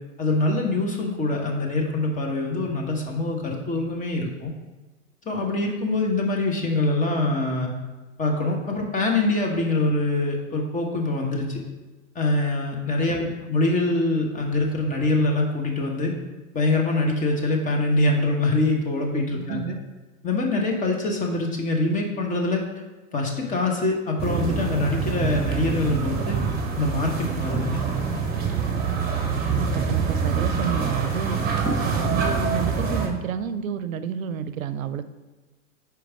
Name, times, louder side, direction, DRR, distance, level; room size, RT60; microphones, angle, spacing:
voice 1, 0.2-4.5 5.2-7.7 8.2-11.6 12.1-16.1 16.5-19.6 20.2-22.6 23.1-26.4 26.7-27.8, left 2 dB, 20° left, 1 dB, 1.1 m, -24 dB
voice 2, 19.3-19.8 29.5-31.4 31.8-35.0, right 8 dB, 85° right, 11 dB, 0.5 m, -30 dB
sound 1, 24.2-33.1, right 5 dB, 25° right, 1.2 m, -25 dB
5.1 x 4.7 x 4.6 m, 1.2 s
hypercardioid pair, 105°, 40 cm